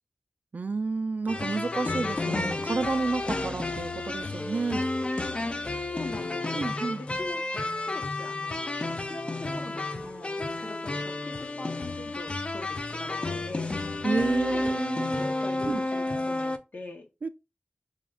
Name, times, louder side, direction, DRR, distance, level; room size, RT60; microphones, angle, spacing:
voice 1, 0.5-4.9 6.5-7.0 14.0-15.2 15.6-15.8 17.2-17.3, right 3 dB, 55° right, 0.3 m, -30 dB
sound 1, 1.3-16.6, left 2 dB, 35° left, 0.4 m, -31 dB
voice 2, 5.9-7.5 7.8-8.7 9.0-13.7 14.5-17.1, left 2 dB, 60° left, 0.9 m, -42 dB
5.0 x 2.4 x 3.5 m
wide cardioid pair, 70°, 3 cm